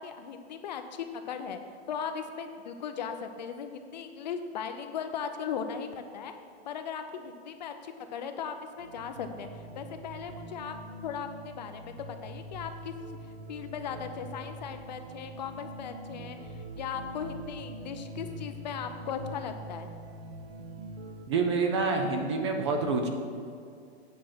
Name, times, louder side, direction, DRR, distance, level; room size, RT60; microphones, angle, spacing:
voice 1, 0.0-1.6 1.9-6.3 6.6-9.5 9.7-10.7 11.0-12.9 13.5-19.9, left 7 dB, 45° left, 7 dB, 0.5 m, -38 dB
sound 1, 8.8-21.2, right 1 dB, 55° right, 1.2 m, -44 dB
voice 2, 21.3-23.1, right 4 dB, 25° right, 4 dB, 0.5 m, -27 dB
8.4 x 4.9 x 5.9 m, 2.3 s
supercardioid pair, 170°, 32 cm